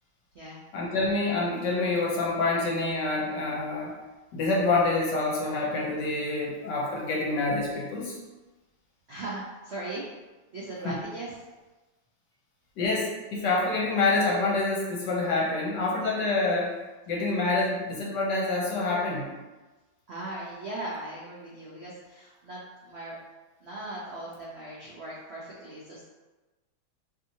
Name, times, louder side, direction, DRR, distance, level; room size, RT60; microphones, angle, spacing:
voice 1, 0.7-4.0 4.3-8.2 10.8-11.0 12.8-16.8 17.1-19.3, left 3 dB, 65° left, -3 dB, 1.4 m, -27 dB
voice 2, 9.1-10.0 10.5-11.3 20.1-23.2 23.6-26.0, right 2 dB, 75° right, -7 dB, 0.6 m, -38 dB
4.8 x 2.9 x 2.7 m, 1.2 s
omnidirectional pair, 2.2 m